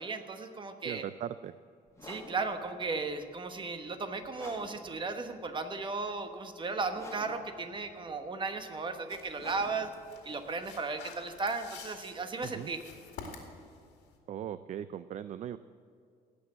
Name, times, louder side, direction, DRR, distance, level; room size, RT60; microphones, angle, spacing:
voice 1, 0.0-1.0 2.0-9.9 10.2-12.8, right 4 dB, 30° right, 7 dB, 1.2 m, -35 dB
voice 2, 0.8-1.5 12.4-12.7 14.3-15.6, right 10 dB, 45° right, 13 dB, 0.4 m, -39 dB
sound 1, 1.9-11.8, left 2 dB, 15° left, 1.9 m, -51 dB
sound 2, 9.1-14.2, left 5 dB, 90° left, 2.3 m, -50 dB
17.5 x 6.1 x 7.8 m, 2.3 s
cardioid pair, 110°, 17 cm